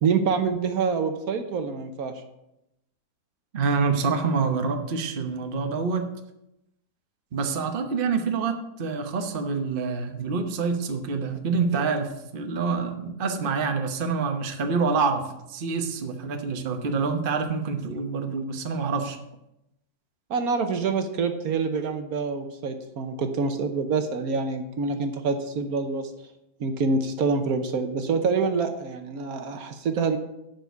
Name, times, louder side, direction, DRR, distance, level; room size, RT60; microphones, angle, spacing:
voice 1, 0.0-2.2 20.3-26.1 26.6-30.2, right 4 dB, 70° right, 7 dB, 1.3 m, -26 dB
voice 2, 3.5-6.1 7.3-15.2 15.5-19.2, right 5 dB, 40° right, 5 dB, 1.0 m, -26 dB
10.5 x 4.9 x 6.8 m, 0.87 s
omnidirectional pair, 1.7 m